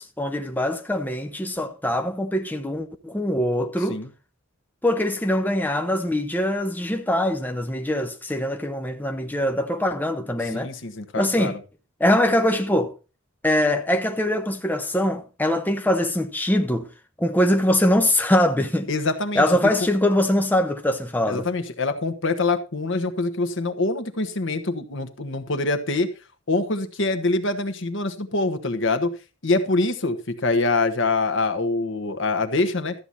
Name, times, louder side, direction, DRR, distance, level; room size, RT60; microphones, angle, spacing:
voice 1, 0.0-4.0 4.8-10.7 11.2-11.6 12.0-12.9 13.4-16.9 17.2-18.9 19.4-21.5, left 1 dB, 10° left, 0.8 m, -23 dB
voice 2, 10.5-11.6 18.9-19.4 21.3-26.1 26.5-29.1 29.4-32.9, left 3 dB, 65° left, 1.4 m, -24 dB
13.0 x 8.1 x 4.2 m
head